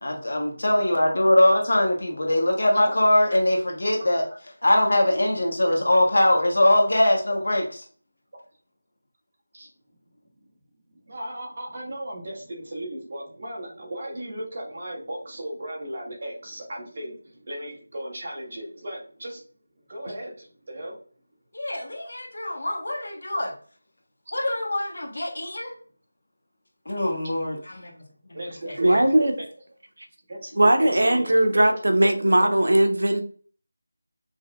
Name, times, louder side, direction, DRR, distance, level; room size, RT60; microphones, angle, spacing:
voice 1, 0.0-4.2 4.6-7.8 21.5-23.5 24.3-25.7 26.9-27.9 28.3-28.4 28.9-29.0, left 1 dB, 70° left, 1 dB, 1.1 m, -22 dB
voice 2, 11.0-19.4 19.9-21.0 28.3-28.9 29.4-29.5 30.3-32.6, right 1 dB, 35° right, -3 dB, 1.2 m, -36 dB
voice 3, 28.8-29.3 30.6-33.2, right 1 dB, 80° right, 6 dB, 0.7 m, -19 dB
5.2 x 2.1 x 2.2 m, 0.44 s
figure-of-eight pair, 175°, 0 cm